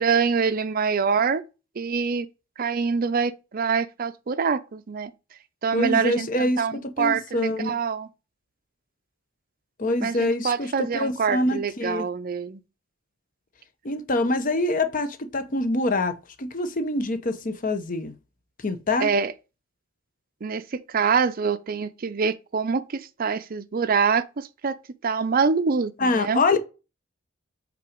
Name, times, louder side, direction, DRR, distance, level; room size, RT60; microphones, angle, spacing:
voice 1, 0.0-1.4 1.8-2.3 2.6-5.1 5.6-8.1 10.0-12.6 19.0-19.3 20.4-24.8 25.0-26.4, right 5 dB, 45° right, 0.5 m, -25 dB
voice 2, 5.7-7.8 9.8-12.1 13.8-18.1 18.6-19.1 26.0-26.6, left 2 dB, 40° left, 0.8 m, -25 dB
5.8 x 3.8 x 5.1 m
head